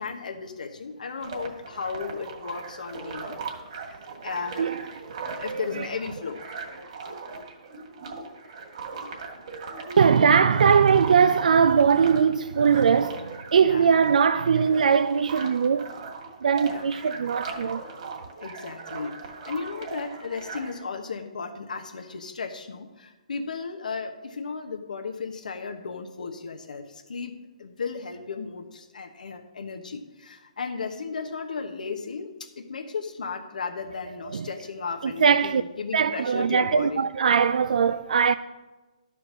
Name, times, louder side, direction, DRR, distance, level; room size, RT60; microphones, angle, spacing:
voice 1, 0.0-3.4 4.2-4.7 5.4-6.4 13.6-13.9 16.6-16.9 18.4-32.3 32.6-37.0, left 5 dB, 80° left, 1.1 m, -35 dB
sound 1, 1.2-20.8, right 4 dB, 50° right, 2.1 m, -39 dB
voice 2, 4.6-5.9 10.0-15.9 16.4-17.8 34.3-34.5 35.0-35.6 35.9-38.3, right 6 dB, 75° right, 0.4 m, -21 dB
11.5 x 4.9 x 6.1 m
hypercardioid pair, 145°, 4 cm